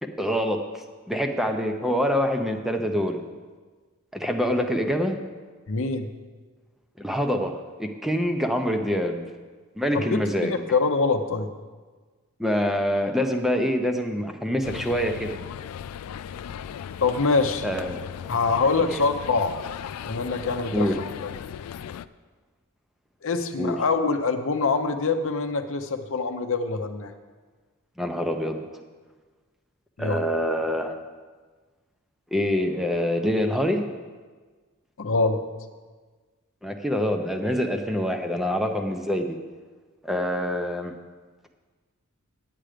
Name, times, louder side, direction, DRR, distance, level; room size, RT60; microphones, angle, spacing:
voice 1, 0.0-3.2 4.1-5.2 7.0-9.2 9.8-10.5 12.4-15.3 17.6-18.0 18.9-19.0 20.7-21.0 23.6-23.8 28.0-28.6 30.0-30.9 32.3-33.9 36.6-39.4 40.0-40.9, equal, ahead, 4 dB, 0.6 m, -25 dB
voice 2, 5.7-6.1 9.9-11.5 17.0-17.6 18.3-19.5 20.0-20.9 21.2-21.3 23.2-27.1 30.0-30.3 35.0-35.4, left 4 dB, 65° left, 7 dB, 0.7 m, -24 dB
sound 1, 14.6-22.1, left 8 dB, 85° left, 0.3 m, -37 dB
9.1 x 8.8 x 5.0 m, 1.4 s
head